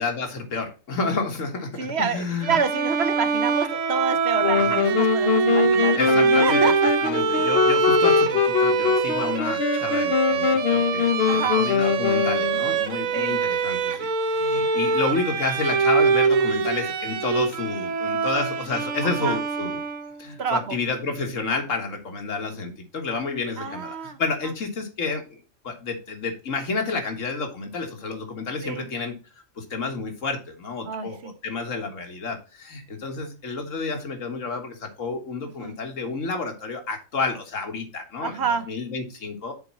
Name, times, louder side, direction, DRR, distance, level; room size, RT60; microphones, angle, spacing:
voice 1, 0.0-2.6 4.6-4.8 5.9-6.7 7.0-19.8 20.2-25.4 25.6-29.1 29.6-38.4 38.7-39.5, left 4 dB, 75° left, 4 dB, 1.9 m, -30 dB
voice 2, 1.8-7.1 11.3-11.6 13.1-13.3 19.0-19.4 20.4-20.8 23.6-24.2 28.6-28.9 30.8-31.3 35.6-35.8 38.2-38.7, right 6 dB, 60° right, 11 dB, 0.9 m, -28 dB
Bowed string instrument, 2.4-20.2, right 4 dB, 85° right, 1.3 m, -24 dB
sound 1, 4.4-12.9, left 7 dB, 60° left, 0.8 m, -23 dB
6.9 x 4.1 x 5.9 m, 0.33 s
omnidirectional pair, 1.3 m